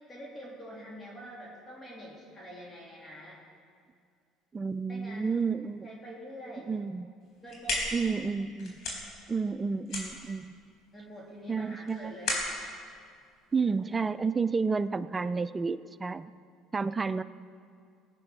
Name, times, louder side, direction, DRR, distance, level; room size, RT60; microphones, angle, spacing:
voice 1, 0.1-3.5 4.9-5.3 5.8-6.7 7.4-7.9 10.9-12.4, equal, 20° left, -3 dB, 2.7 m, -45 dB
voice 2, 4.5-5.9 6.7-7.1 7.9-8.8 9.3-10.6 11.5-12.1 13.5-16.3 16.7-17.2, right 4 dB, 20° right, 14 dB, 0.4 m, -30 dB
sound 1, 7.2-14.1, left 2 dB, 60° left, 3.9 m, -37 dB
18.0 x 8.9 x 5.4 m, 2.2 s
supercardioid pair, 100°, 0 cm